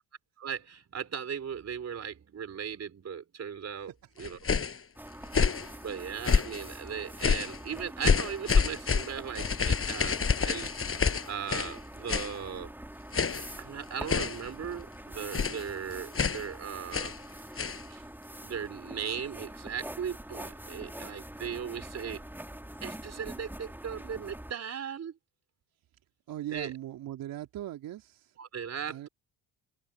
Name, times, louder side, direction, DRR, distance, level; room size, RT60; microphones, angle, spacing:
voice 1, 0.4-4.4 5.8-10.2 10.4-10.7 11.3-12.7 13.6-17.1 17.9-18.1 18.4-22.2 22.8-25.2 26.5-26.7 28.4-29.1, right 7 dB, 45° right, 3.8 m, -38 dB
sound 1, 4.2-4.8 5.3-5.7 6.2-6.7 7.2-7.6 8.0-11.8 12.1-12.4 13.1-13.5 14.1-14.5 15.3-15.7 16.1-16.5 16.9-17.2 17.6-17.8, left 5 dB, 35° left, 5.9 m, -28 dB
sound 2, 5.0-24.5, right 1 dB, 5° right, 3.6 m, -45 dB
voice 2, 26.3-28.3 28.9-29.1, right 13 dB, 65° right, 3.1 m, -39 dB
open air
hypercardioid pair, 60°, 37 cm